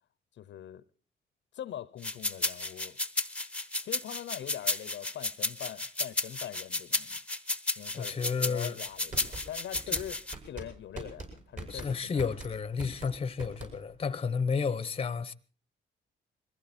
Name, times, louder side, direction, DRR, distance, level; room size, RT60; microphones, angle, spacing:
voice 1, 0.4-0.8 1.5-3.0 3.8-7.2 7.8-12.3, left 11 dB, 65° left, 0.8 m, -43 dB
sound 1, 2.0-10.3, left 2 dB, 5° left, 1.0 m, -32 dB
voice 2, 7.9-8.8 11.7-15.3, left 5 dB, 30° left, 0.9 m, -31 dB
sound 2, 8.9-14.1, right 2 dB, 40° right, 6.2 m, -43 dB
22.0 x 15.0 x 4.3 m
cardioid pair, 90°, 20 cm